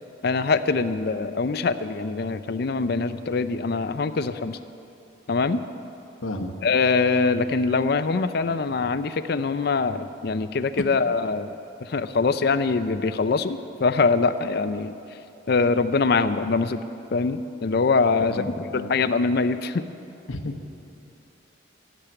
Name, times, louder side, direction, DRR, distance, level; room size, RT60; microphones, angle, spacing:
voice 1, 0.2-4.6 5.3-5.6 6.6-11.6 11.8-14.9 15.5-16.8 17.1-18.4 18.7-19.8, left 4 dB, 50° left, 12 dB, 0.4 m, -23 dB
voice 2, 6.2-6.5 18.3-18.9 20.3-20.6, left 1 dB, 85° left, 4 dB, 1.0 m, -32 dB
12.0 x 7.3 x 9.7 m, 2.9 s
head